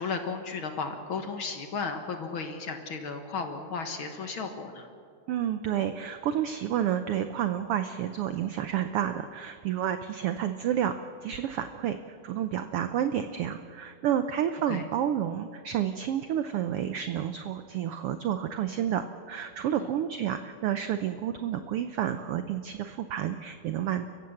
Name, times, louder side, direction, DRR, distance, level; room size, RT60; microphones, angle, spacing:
voice 1, 0.0-4.9 14.7-14.9 19.8-20.0, left 4 dB, 50° left, 6 dB, 1.8 m, -34 dB
voice 2, 5.3-24.1, right 10 dB, 85° right, 9 dB, 1.2 m, -30 dB
30.0 x 15.5 x 7.1 m, 2.4 s
omnidirectional pair, 3.5 m